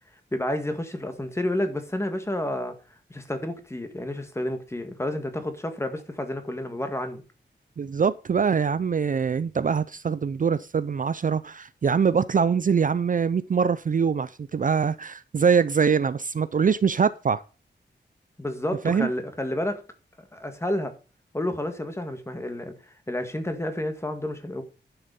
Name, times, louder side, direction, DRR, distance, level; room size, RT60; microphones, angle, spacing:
voice 1, 0.3-2.8 3.1-7.2 18.4-19.8 20.2-20.9 21.3-24.6, left 1 dB, 15° left, 1.7 m, -30 dB
voice 2, 7.8-17.4 18.8-19.1, right 6 dB, 45° right, 0.5 m, -23 dB
11.0 x 7.0 x 5.3 m
wide cardioid pair, 140°, 19 cm